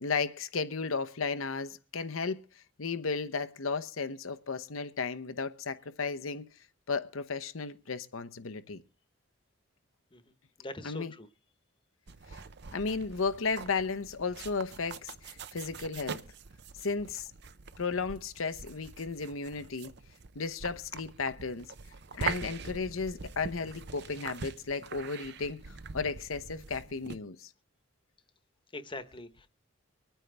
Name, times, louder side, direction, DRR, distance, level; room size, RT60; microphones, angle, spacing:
voice 1, 0.0-2.4 2.8-6.5 6.9-8.8 10.8-11.1 12.3-12.4 12.7-16.2 16.8-17.3 17.8-19.9 20.3-21.7 22.1-27.5, left 4 dB, 90° left, 0.9 m, -34 dB
voice 2, 10.6-11.3 28.7-29.5, left 2 dB, 25° left, 1.1 m, -42 dB
sound 1, 12.1-27.2, right 5 dB, 55° right, 0.7 m, -43 dB
24.5 x 9.1 x 3.4 m
head